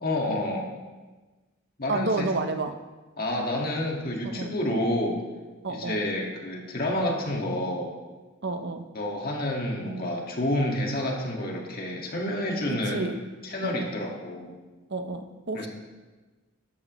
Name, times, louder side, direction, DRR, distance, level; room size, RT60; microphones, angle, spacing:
voice 1, 0.0-0.7 1.8-2.3 3.2-5.2 5.7-7.9 8.9-13.1 13.4-14.5 15.5-15.7, left 1 dB, 45° left, 0 dB, 1.8 m, -29 dB
voice 2, 1.9-2.7 4.2-4.5 5.6-6.0 8.4-8.9 12.9-13.2 13.6-14.0 14.9-15.7, right 3 dB, 55° right, 7 dB, 0.8 m, -30 dB
13.5 x 12.0 x 3.1 m, 1.3 s
head